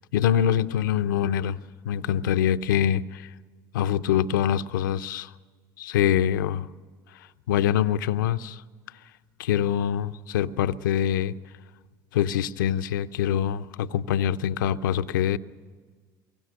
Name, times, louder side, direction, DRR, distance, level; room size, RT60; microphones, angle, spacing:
voice 1, 0.1-1.6 1.8-3.3 3.7-5.3 5.8-6.7 7.1-8.6 9.4-11.3 12.1-15.4, left 10 dB, 90° left, 0.6 m, -24 dB
24.0 x 22.0 x 6.5 m
hypercardioid pair, 75°, 10 cm